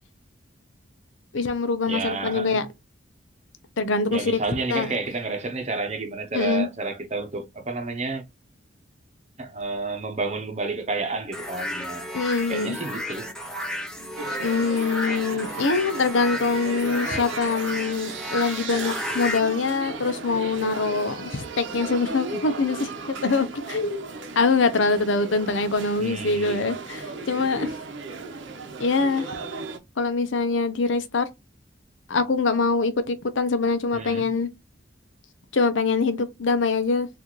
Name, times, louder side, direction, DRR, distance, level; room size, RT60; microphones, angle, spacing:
voice 1, 1.3-2.7 3.8-4.4 4.7-5.0 6.3-6.7 12.1-12.8 14.4-22.9 23.2-24.1 24.4-27.7 28.8-29.3 30.0-31.3 32.1-34.5 35.5-37.1, left 4 dB, 80° left, 0.7 m, -24 dB
voice 2, 1.9-2.6 4.1-8.2 9.4-12.1 12.5-13.3 26.0-26.7 33.9-34.3, right 3 dB, 35° right, 0.8 m, -30 dB
sound 1, 11.3-19.4, left 1 dB, 5° left, 0.7 m, -33 dB
sound 2, 14.2-29.8, right 4 dB, 75° right, 0.9 m, -36 dB
4.0 x 2.6 x 3.0 m
head